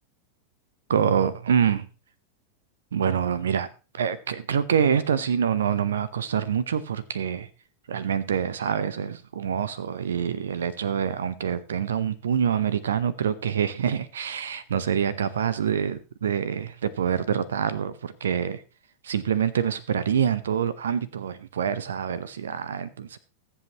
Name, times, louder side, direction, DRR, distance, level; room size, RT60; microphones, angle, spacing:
voice 1, 0.9-1.9 2.9-3.7 3.9-7.5 7.9-18.6 19.0-23.2, right 8 dB, 65° right, 18 dB, 0.7 m, -26 dB
20.0 x 7.9 x 3.0 m, 0.31 s
figure-of-eight pair, 90°, 0 cm